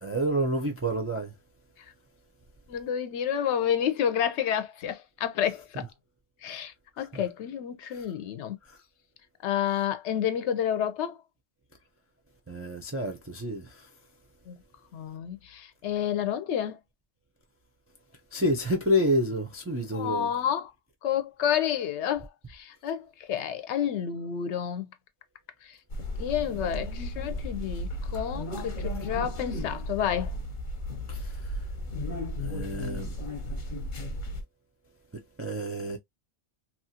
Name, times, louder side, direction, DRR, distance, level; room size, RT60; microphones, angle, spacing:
voice 1, 0.0-1.3 7.1-7.2 7.9-8.0 8.7-8.8 12.5-13.9 18.3-20.3 31.1-31.6 32.4-33.2 35.4-36.0, equal, 25° right, 0.3 m, -29 dB
voice 2, 2.7-5.9 6.4-8.6 9.4-11.2 14.5-14.6 14.9-16.8 19.9-20.7 21.0-24.9 25.6-25.8 26.2-30.4, left 9 dB, 80° left, 0.9 m, -30 dB
sound 1, 25.9-34.4, left 1 dB, 50° left, 0.8 m, -34 dB
2.9 x 2.4 x 2.7 m
omnidirectional pair, 1.2 m